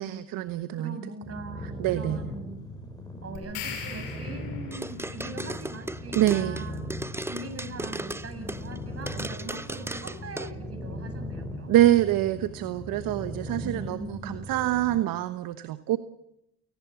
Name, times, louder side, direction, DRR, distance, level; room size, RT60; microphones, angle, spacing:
voice 1, 0.0-1.0 1.8-2.2 6.1-6.6 11.7-16.0, right 14 dB, 60° right, 11 dB, 1.2 m, -25 dB
voice 2, 0.7-2.6 3.2-6.8 7.3-11.7 13.6-14.3, right 3 dB, 40° right, 6 dB, 7.5 m, -41 dB
sound 1, 1.2-15.0, left 1 dB, 10° left, 7.9 m, -39 dB
sound 2, 3.4-4.9, left 7 dB, 75° left, 6.6 m, -39 dB
sound 3, 4.7-8.8 9.1-10.5, right 2 dB, 5° right, 0.9 m, -36 dB
29.0 x 19.0 x 7.1 m, 0.84 s
supercardioid pair, 75°, 38 cm